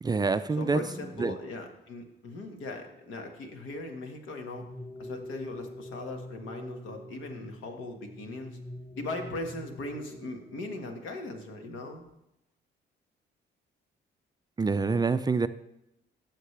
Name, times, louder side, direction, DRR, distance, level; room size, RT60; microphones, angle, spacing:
voice 1, 0.0-0.8 1.2-1.4 14.6-15.5, right 4 dB, 20° right, 12 dB, 0.4 m, -26 dB
voice 2, 0.6-4.7 5.0-8.6 8.9-12.0, left 2 dB, 80° left, 4 dB, 1.6 m, -39 dB
sound 1, 0.6-1.7 4.5-11.5, left 1 dB, 10° left, 0.9 m, -45 dB
15.0 x 6.6 x 3.3 m, 0.86 s
cardioid pair, 90°, 20 cm